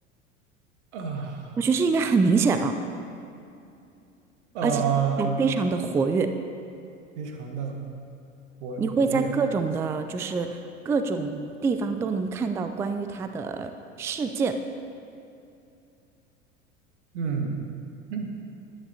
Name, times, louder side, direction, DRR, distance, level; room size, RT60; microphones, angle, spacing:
voice 1, 0.9-1.5 4.5-5.4 7.1-7.8 8.6-9.3 17.1-17.7 18.1-18.3, right 6 dB, 60° right, 2 dB, 1.6 m, -29 dB
voice 2, 1.6-2.7 4.6-4.8 5.2-6.3 8.8-10.6 10.9-13.7 14.0-14.6, right 4 dB, 10° right, 8 dB, 0.3 m, -25 dB
20.0 x 10.0 x 2.8 m, 2.6 s
figure-of-eight pair, 75°, 39 cm